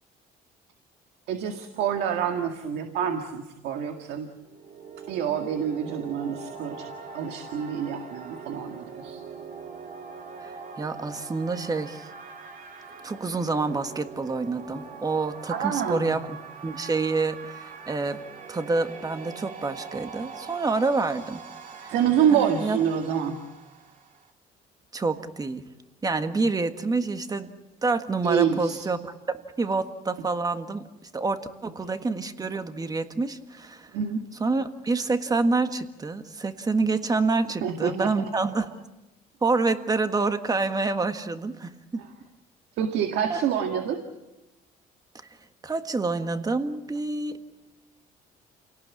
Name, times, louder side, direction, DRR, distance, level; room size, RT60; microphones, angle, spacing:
voice 1, 1.3-4.3 5.1-6.9 7.1-9.2 15.5-16.2 21.9-23.4 28.2-28.9 33.9-34.2 37.6-38.1 42.8-44.0, right 8 dB, 80° right, 5 dB, 2.0 m, -27 dB
sound 1, 4.4-24.3, right 5 dB, 50° right, 2.5 m, -42 dB
voice 2, 10.4-12.1 13.0-16.4 16.6-18.2 18.5-21.4 21.8-21.9 22.3-22.8 24.9-25.6 26.0-27.5 27.8-33.9 34.4-38.7 39.4-42.0 43.3-43.4 45.6-47.4, right 3 dB, 20° right, 8 dB, 1.6 m, -27 dB
28.5 x 18.0 x 8.5 m, 1.0 s
cardioid pair, 110°, 17 cm